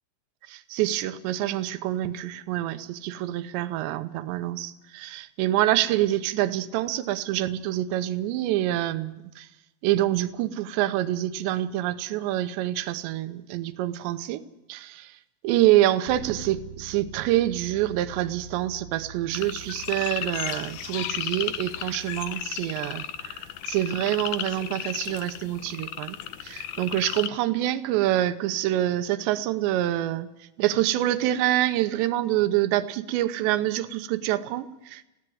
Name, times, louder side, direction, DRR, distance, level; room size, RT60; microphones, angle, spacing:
voice 1, 0.5-9.5 9.8-14.4 14.7-15.2 15.4-26.2 26.4-30.3 30.6-35.0, right 14 dB, 85° right, 11 dB, 3.1 m, -26 dB
Bass guitar, 16.1-22.3, right 5 dB, 65° right, 2.7 m, -44 dB
sound 1, 19.3-27.3, left 10 dB, 85° left, 1.8 m, -34 dB
20.5 x 16.5 x 7.8 m, 0.92 s
omnidirectional pair, 5.0 m